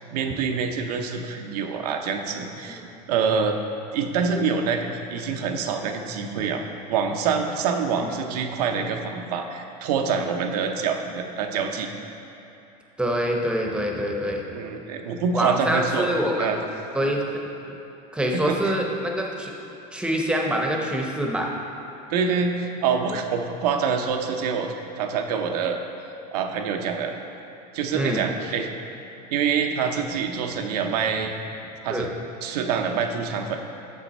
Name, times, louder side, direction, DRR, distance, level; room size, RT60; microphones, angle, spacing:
voice 1, 0.1-2.8 3.1-3.6 3.9-11.9 14.5-16.1 16.4-16.6 18.3-18.7 22.1-25.8 26.3-27.1 27.7-28.7 29.3-31.3 31.8-32.1 32.4-33.6, right 6 dB, 85° right, 4 dB, 0.7 m, -26 dB
voice 2, 13.0-14.4 15.3-16.5 16.9-17.2 18.1-19.5 19.9-21.5 23.1-23.2 27.9-28.2 31.9-32.1, equal, 5° right, 0 dB, 0.7 m, -25 dB
6.9 x 5.6 x 4.2 m, 2.9 s
supercardioid pair, 115°, 20 cm